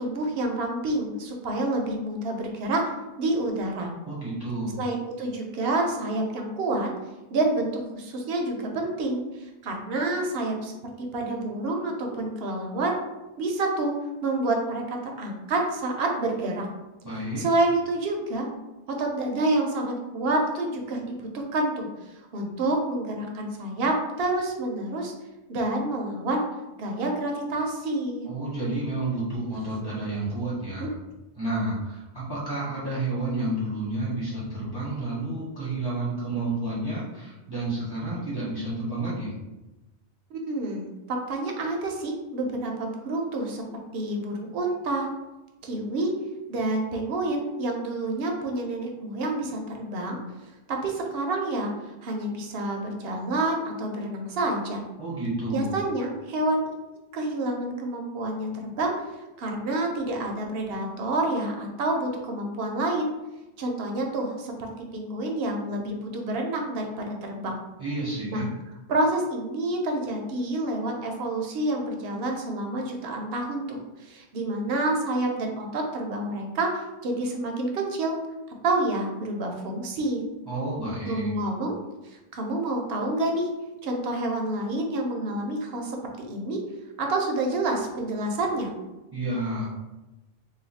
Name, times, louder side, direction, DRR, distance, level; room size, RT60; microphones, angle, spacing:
voice 1, 0.0-2.8 3.2-3.9 4.8-6.9 7.3-7.7 7.9-10.7 11.0-12.9 13.4-13.9 14.2-16.7 17.4-18.5 19.0-21.9 22.3-25.1 25.5-26.4 26.8-28.3 30.8-30.9 40.3-43.6 43.9-45.1 45.6-46.1 46.5-50.2 50.7-51.7 52.0-54.8 55.5-56.8 57.1-58.9 59.4-63.1 63.6-67.6 68.3-68.4 68.9-78.1 78.6-80.2 81.1-81.7 82.0-83.5 83.8-86.0 86.3-86.6 87.0-88.7, right 2 dB, 65° right, 1 dB, 0.8 m, -28 dB
voice 2, 4.0-4.8 17.0-17.4 28.3-30.9 31.4-39.4 55.0-55.8 67.8-68.5 80.5-81.3 89.1-89.7, right 2 dB, 25° right, -8 dB, 0.8 m, -30 dB
2.6 x 2.4 x 4.0 m, 1.0 s
omnidirectional pair, 1.1 m